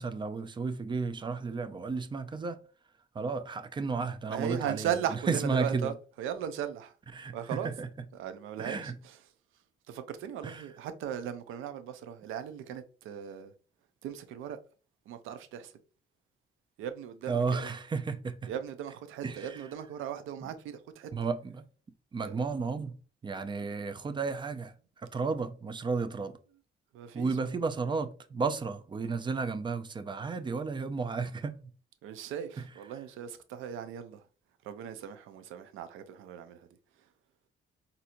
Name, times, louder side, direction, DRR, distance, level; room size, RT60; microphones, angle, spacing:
voice 1, 0.0-2.6 3.1-5.9 7.1-7.9 8.6-9.0 10.4-10.7 17.3-18.5 19.2-19.7 20.4-20.5 21.1-21.7 22.1-22.9 23.2-26.4 27.1-31.7 32.6-32.7, right 4 dB, 25° right, 0.4 m, -33 dB
voice 2, 4.3-6.9 7.3-7.7 8.2-9.2 9.9-13.5 14.0-14.6 15.1-15.7 16.8-17.7 18.5-21.1 22.2-22.3 26.9-27.5 32.0-34.2 34.6-36.7, right 9 dB, 90° right, 0.5 m, -38 dB
4.2 x 2.6 x 2.5 m
cardioid pair, 90°, 20 cm